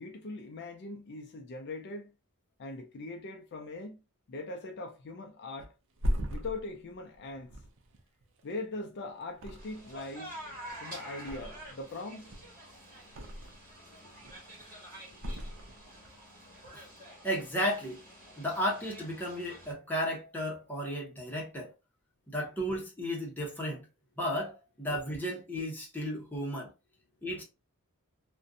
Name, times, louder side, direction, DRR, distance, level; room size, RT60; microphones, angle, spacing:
voice 1, 0.0-2.1 2.6-4.0 4.3-5.7 6.3-7.5 8.4-10.4 10.8-12.3, left 2 dB, 50° left, 0.4 m, -41 dB
Thump thud, 5.6-8.9 9.3-10.1 10.4-11.9 12.2-13.7 14.1-14.6 15.2-16.2 16.5-16.7, equal, 60° right, 0.5 m, -38 dB
sound 1, 9.6-19.7, right 1 dB, 40° right, 1.3 m, -48 dB
voice 2, 17.2-18.0 18.4-21.7 22.3-23.9 24.2-26.7 27.2-27.4, equal, 10° left, 0.7 m, -34 dB
2.5 x 2.2 x 2.5 m
head